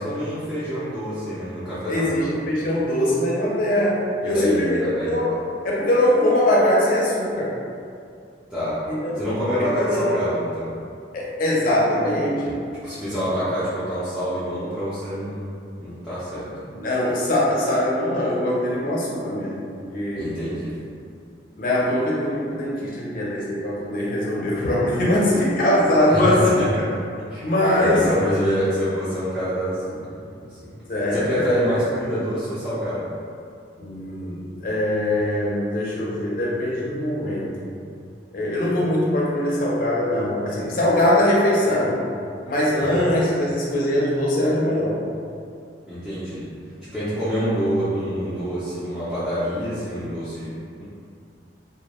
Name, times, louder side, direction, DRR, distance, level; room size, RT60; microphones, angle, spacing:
voice 1, 0.0-2.4 4.2-5.3 8.5-8.8 9.1-10.8 12.7-15.5 15.8-16.5 20.2-20.8 26.1-26.7 27.3-27.4 27.8-30.7 31.1-33.1 42.7-43.1 45.9-46.5 46.8-50.8, equal, ahead, -16 dB, 0.5 m, -26 dB
voice 2, 1.9-4.8 5.1-5.3 5.6-7.5 8.9-9.2 9.9-10.2 11.1-12.6 16.7-20.3 21.6-26.6 27.4-28.0 30.9-31.4 33.8-37.7 38.3-42.0 42.4-45.0, left 1 dB, 45° left, -5 dB, 0.5 m, -22 dB
2.3 x 2.1 x 2.9 m, 2.4 s
head